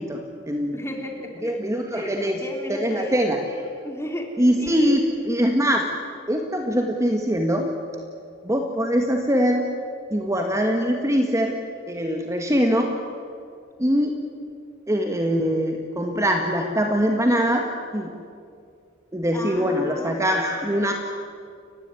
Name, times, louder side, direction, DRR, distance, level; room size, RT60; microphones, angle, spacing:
voice 1, 0.0-0.7 1.4-2.4 2.7-3.4 4.4-5.9 6.3-7.7 8.4-9.6 10.1-11.6 11.9-12.9 13.8-14.2 14.9-17.7 17.9-18.1 19.1-20.9, equal, 15° right, 3 dB, 1.5 m, -22 dB
voice 2, 0.7-1.6 1.9-3.2 3.8-4.3 4.6-5.0 19.3-20.2, left 1 dB, 15° left, 2 dB, 3.4 m, -34 dB
30.0 x 15.5 x 9.8 m, 2.4 s
head